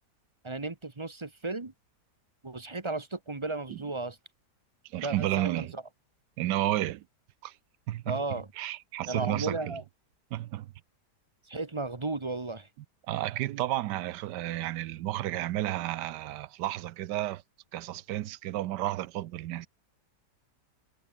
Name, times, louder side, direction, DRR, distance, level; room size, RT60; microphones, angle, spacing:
voice 1, 0.4-1.7 2.4-4.2 5.0-5.8 8.1-8.5 9.1-9.8 11.5-12.7, right 3 dB, 20° right, 1.1 m, -34 dB
voice 2, 4.8-5.7 6.4-7.0 7.4-7.6 7.9-8.2 8.6-9.8 10.3-10.7 13.1-17.4 17.7-19.7, right 14 dB, 85° right, 1.3 m, -32 dB
omnidirectional pair, 1.8 m